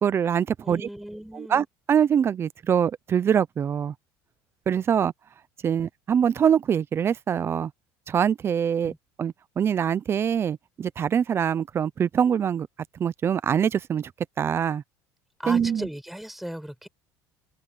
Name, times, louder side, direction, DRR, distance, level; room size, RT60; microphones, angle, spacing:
voice 1, 0.0-0.9 1.3-3.9 4.7-5.1 5.6-7.7 8.1-8.9 9.2-12.7 13.0-14.1 14.4-14.8 15.5-15.9, right 8 dB, 30° right, 0.7 m, -24 dB
voice 2, 0.6-1.6 8.8-9.0 15.4-16.9, equal, ahead, 5.1 m, -37 dB
supercardioid pair, 120°, 8 cm